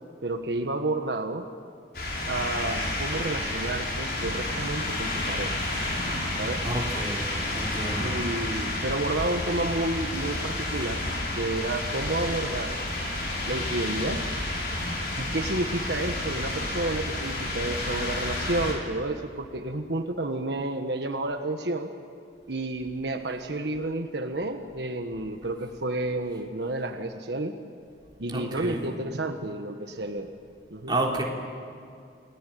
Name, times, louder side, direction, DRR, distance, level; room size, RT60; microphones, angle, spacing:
voice 1, 0.2-1.5 2.3-5.6 6.4-6.6 8.0-11.0 11.4-12.8 13.5-14.2 15.2-21.9 22.5-27.6 28.2-30.3 30.7-31.0, right 2 dB, 80° right, 5 dB, 1.4 m, -30 dB
sound 1, 1.9-18.7, left 1 dB, 60° left, 6.4 m, -30 dB
voice 2, 6.6-7.3 7.5-8.2 28.3-28.9 30.9-31.2, right 1 dB, 25° right, -2 dB, 3.8 m, -30 dB
29.0 x 19.0 x 9.3 m, 2.4 s
head